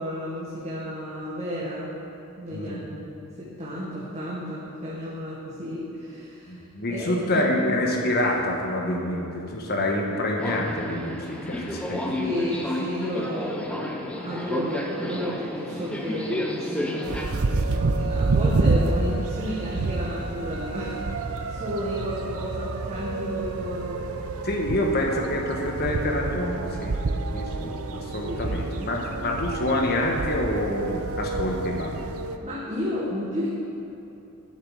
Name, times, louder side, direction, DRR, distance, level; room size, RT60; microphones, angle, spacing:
voice 1, 0.0-1.9 2.4-6.6 6.9-7.9 12.2-21.0 21.3-24.4 28.3-28.6 32.4-33.5, equal, 30° right, -8 dB, 1.5 m, -32 dB
voice 2, 6.5-12.1 24.4-27.0 27.3-31.9, left 1 dB, 45° left, 0 dB, 1.3 m, -27 dB
Subway metro underground, 10.4-17.2, left 1 dB, 5° left, 0.7 m, -31 dB
sound 1, 17.0-32.4, right 3 dB, 70° right, 0.6 m, -28 dB
12.0 x 7.4 x 4.9 m, 2.9 s
head